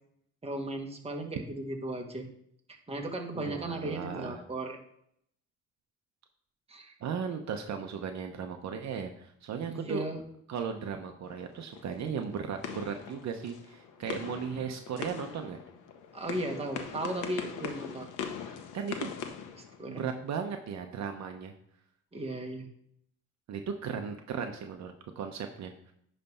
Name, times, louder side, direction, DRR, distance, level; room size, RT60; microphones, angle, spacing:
voice 1, 0.4-2.3 2.9-4.8 6.7-6.9 9.7-10.2 16.1-18.1 19.5-20.1 22.1-22.7, right 1 dB, 20° right, 1 dB, 1.7 m, -36 dB
voice 2, 3.3-4.4 7.0-10.0 10.5-15.6 18.5-19.1 19.9-21.5 23.5-25.9, right 6 dB, 65° right, 5 dB, 0.9 m, -36 dB
sound 1, 11.3-20.3, left 7 dB, 85° left, 1.1 m, -42 dB
10.0 x 3.4 x 5.5 m, 0.70 s
cardioid pair, 90°, 30 cm